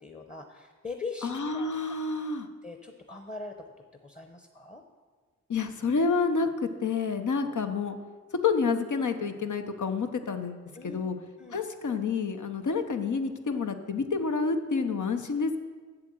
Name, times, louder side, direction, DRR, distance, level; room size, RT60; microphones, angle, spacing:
voice 1, 0.0-1.7 2.6-3.5 4.0-4.8 10.8-11.0 11.4-11.6, left 4 dB, 25° left, 6 dB, 0.8 m, -41 dB
voice 2, 1.2-2.5 5.5-8.0 8.4-11.2 11.5-15.6, left 4 dB, 80° left, 6 dB, 0.9 m, -29 dB
7.8 x 7.8 x 7.7 m, 1.4 s
wide cardioid pair, 80°, 29 cm